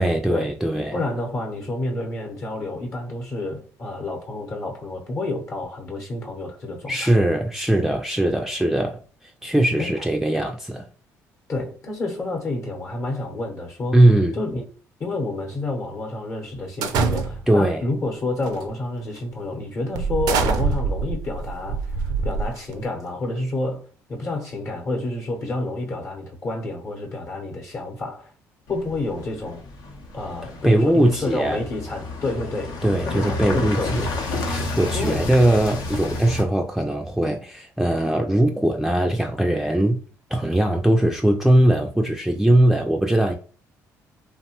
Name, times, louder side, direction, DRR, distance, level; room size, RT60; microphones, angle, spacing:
voice 1, 0.0-1.0 6.9-10.9 13.9-14.3 17.5-17.8 30.6-31.6 32.8-34.1 34.5-40.0 40.3-43.4, right 1 dB, 5° right, 0.3 m, -20 dB
voice 2, 0.9-7.2 9.8-9.9 11.5-14.1 14.3-14.6 15.0-28.3 28.7-29.6 30.1-32.7 33.0-34.0 34.9-35.3, left 2 dB, 45° left, 0.8 m, -29 dB
sound 1, 16.8-17.6 18.4-18.7 19.2-19.3 20.0-22.9, right 4 dB, 75° right, 0.4 m, -24 dB
sound 2, 28.7-36.4, left 3 dB, 80° left, 0.6 m, -31 dB
2.7 x 2.1 x 2.8 m
supercardioid pair, 70°, 7 cm